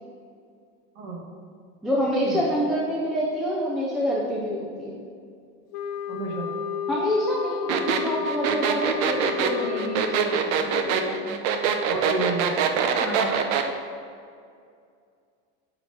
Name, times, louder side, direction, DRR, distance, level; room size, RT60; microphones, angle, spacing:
voice 1, 1.8-5.0 6.9-11.3 13.0-13.4, equal, ahead, -4 dB, 0.3 m, -27 dB
sound 1, 5.7-10.6, left 7 dB, 55° left, 0.6 m, -32 dB
voice 2, 6.1-6.5 11.9-12.5, right 3 dB, 50° right, -1 dB, 1.8 m, -30 dB
sound 2, 7.7-13.7, right 7 dB, 75° right, 0.8 m, -24 dB
5.8 x 5.1 x 6.2 m, 2.3 s
cardioid pair, 170°, 36 cm